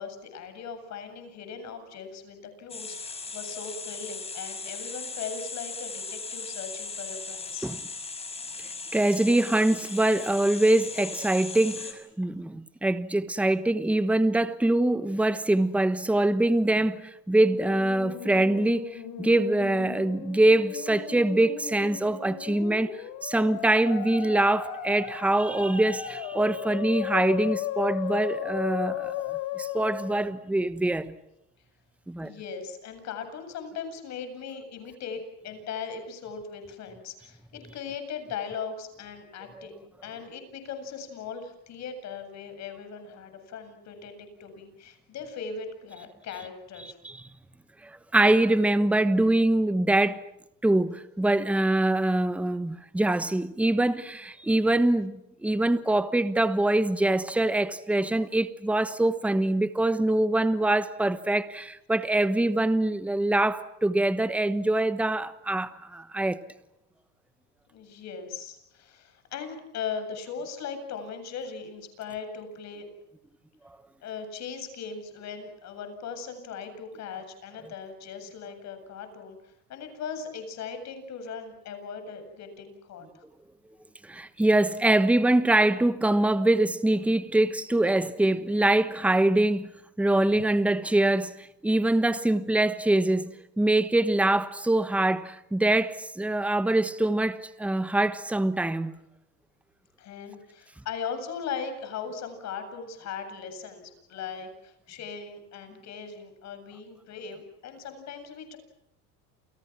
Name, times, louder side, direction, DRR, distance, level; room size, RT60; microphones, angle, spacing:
voice 1, 0.0-7.7 32.2-47.0 67.7-72.9 74.0-83.2 100.0-108.6, left 6 dB, 45° left, 7.8 m, -39 dB
sound 1, 2.7-11.9, left 4 dB, 15° left, 5.4 m, -38 dB
voice 2, 8.9-31.1 32.1-32.3 46.8-47.2 47.8-50.2 50.6-66.4 84.0-89.7 90.0-99.0, right 1 dB, 5° right, 1.2 m, -24 dB
Musical instrument, 17.3-30.4, left 11 dB, 65° left, 5.0 m, -36 dB
29.5 x 29.0 x 6.1 m
supercardioid pair, 130°, 38 cm